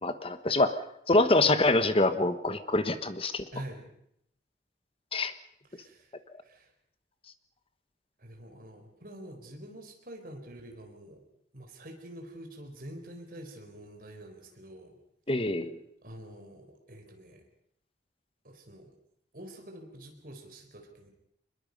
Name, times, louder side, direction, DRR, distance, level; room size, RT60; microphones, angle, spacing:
voice 1, 0.0-0.8 1.1-3.4 5.1-5.3 15.3-15.8, left 2 dB, 30° left, 11 dB, 1.2 m, -25 dB
voice 2, 3.5-3.9 5.7-6.1 6.4-6.7 8.2-11.2 11.5-15.0 16.0-17.4 18.4-18.9 19.3-21.1, right 1 dB, 50° right, 4 dB, 4.2 m, -46 dB
24.0 x 21.5 x 5.4 m, 0.74 s
head